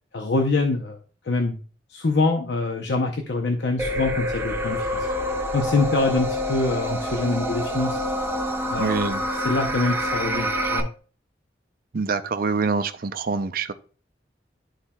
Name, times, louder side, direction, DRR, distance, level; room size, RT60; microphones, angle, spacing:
voice 1, 0.1-1.0 1.3-1.6 1.9-5.1 5.5-8.0 8.7-10.9, left 3 dB, 70° left, 3 dB, 0.7 m, -25 dB
sound 1, 3.8-10.8, equal, 15° right, 0.9 m, -27 dB
voice 2, 8.8-9.2 11.9-13.7, right 4 dB, 55° right, 10 dB, 0.6 m, -25 dB
11.5 x 4.2 x 2.2 m, 0.39 s
head